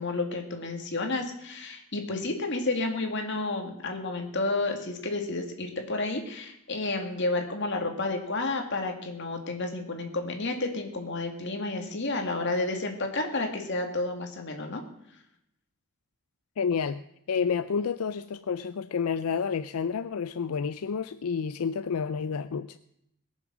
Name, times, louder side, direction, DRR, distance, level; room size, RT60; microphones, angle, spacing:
voice 1, 0.0-14.8, left 2 dB, 55° left, 4 dB, 2.3 m, -31 dB
voice 2, 16.6-17.0 17.3-22.8, left 6 dB, 85° left, 13 dB, 0.5 m, -29 dB
20.5 x 7.2 x 6.2 m, 0.77 s
head